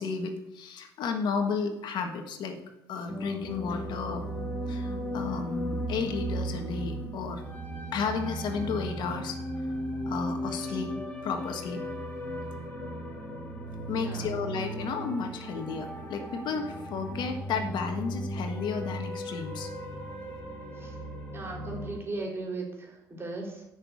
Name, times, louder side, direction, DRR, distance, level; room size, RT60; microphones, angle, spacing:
voice 1, 0.0-2.6 2.9-4.2 4.7-7.4 7.9-9.4 10.1-10.9 11.2-11.8 13.9-19.7, left 5 dB, 70° left, 5 dB, 1.6 m, -33 dB
sound 1, 3.1-22.0, right 1 dB, 20° left, 3.1 m, -36 dB
voice 2, 13.9-14.3 20.7-21.0 21.3-23.6, right 2 dB, 30° right, 0 dB, 4.0 m, -37 dB
9.8 x 6.2 x 8.4 m, 0.87 s
cardioid pair, 90°, 8 cm